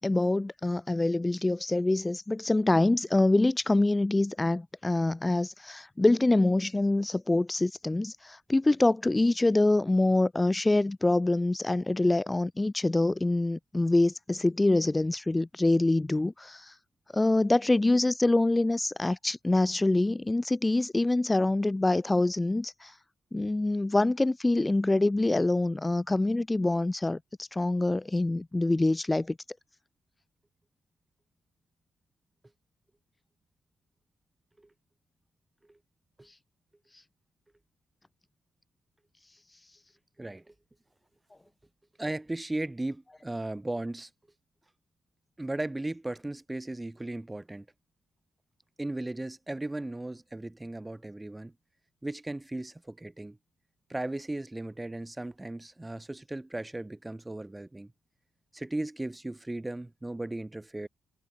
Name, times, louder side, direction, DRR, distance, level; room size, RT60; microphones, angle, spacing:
voice 1, 0.0-16.7 17.1-22.9 23.3-29.4, left 2 dB, 20° left, 3.0 m, -25 dB
voice 2, 40.2-40.5 42.0-44.1 45.4-47.7 48.8-51.5 52.0-53.4 53.9-57.9 58.5-60.9, right 2 dB, 15° right, 5.3 m, -36 dB
hypercardioid pair, 45°, 0 cm